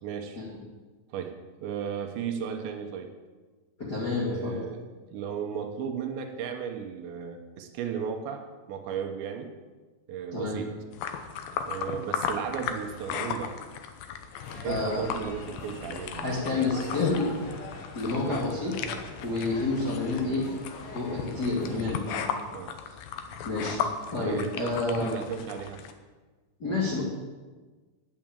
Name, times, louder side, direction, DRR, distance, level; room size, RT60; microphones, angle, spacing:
voice 1, 0.0-0.4 1.1-1.4 1.6-3.1 4.3-4.8 5.1-9.5 10.1-10.8 11.7-13.6 14.6-17.3 18.2-18.4 21.7-21.8 22.5-22.7 24.2-25.8, right 7 dB, 75° right, 5 dB, 3.1 m, -35 dB
voice 2, 3.8-4.6 10.3-10.6 14.6-15.0 16.2-17.3 17.9-18.7 19.2-20.4 20.9-22.3 23.4-23.8 24.1-25.1 26.6-27.0, left 3 dB, 35° left, -6 dB, 1.7 m, -29 dB
sound 1, 10.9-25.9, left 7 dB, 90° left, 2.0 m, -36 dB
sound 2, 14.3-21.8, left 3 dB, 70° left, 3.5 m, -43 dB
9.0 x 8.4 x 8.9 m, 1.3 s
omnidirectional pair, 5.3 m